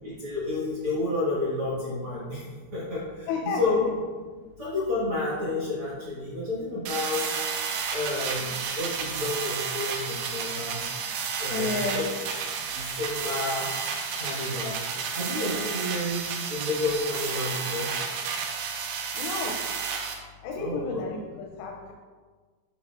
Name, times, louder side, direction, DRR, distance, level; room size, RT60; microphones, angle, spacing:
voice 1, 0.0-2.4 2.7-3.8 4.6-7.4 7.9-8.5 8.7-10.8 11.4-12.0 12.7-13.7 14.1-14.8 15.1-17.9 20.5-21.0, left 2 dB, 60° right, -8 dB, 1.4 m, -30 dB
voice 2, 3.3-3.8 11.5-12.1 15.6-15.7 19.1-19.6 20.4-21.9, left 4 dB, 85° left, 0 dB, 2.7 m, -32 dB
sound 1, 6.9-20.1, right 6 dB, 85° right, 2.8 m, -32 dB
8.9 x 5.5 x 2.4 m, 1.4 s
omnidirectional pair, 4.8 m